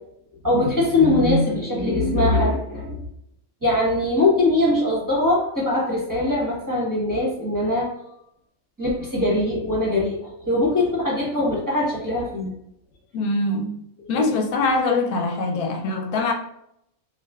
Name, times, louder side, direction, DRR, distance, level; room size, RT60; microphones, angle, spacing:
voice 1, 0.4-3.0 3.6-7.9 8.8-12.5 14.1-14.2, left 2 dB, 15° right, 1.0 m, -21 dB
voice 2, 13.1-13.8 14.1-16.3, left 3 dB, 85° left, 1.1 m, -23 dB
5.8 x 2.4 x 2.3 m
omnidirectional pair, 1.5 m